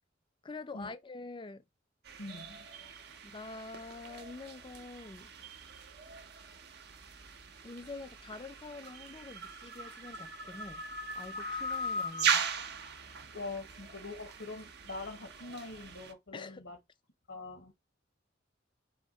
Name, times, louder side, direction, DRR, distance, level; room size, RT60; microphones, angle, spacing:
voice 1, 0.4-1.6 3.2-5.3 7.6-10.8 11.2-12.4 16.3-16.7, left 3 dB, 25° left, 0.4 m, -46 dB
sound 1, 2.1-16.1, right 4 dB, 60° right, 0.7 m, -39 dB
voice 2, 2.2-2.9 13.3-16.8 17.3-17.7, left 3 dB, 75° left, 1.1 m, -44 dB
4.3 x 2.8 x 4.0 m
head